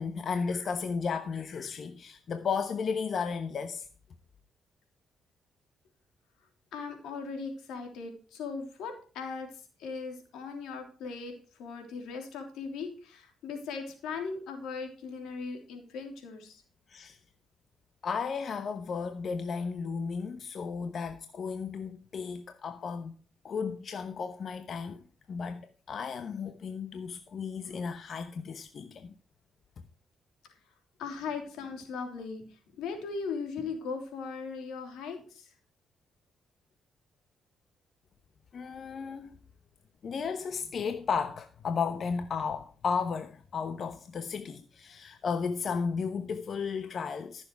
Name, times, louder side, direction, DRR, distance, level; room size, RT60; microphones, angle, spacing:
voice 1, 0.0-3.9 16.9-17.2 18.0-23.1 23.4-25.0 25.3-29.1 38.5-39.3 40.0-47.4, left 5 dB, 55° left, 1.0 m, -34 dB
voice 2, 6.7-9.5 9.8-11.3 11.6-16.6 31.0-35.5, left 5 dB, 90° left, 3.1 m, -38 dB
14.0 x 7.0 x 4.7 m
cardioid pair, 75°, 0 cm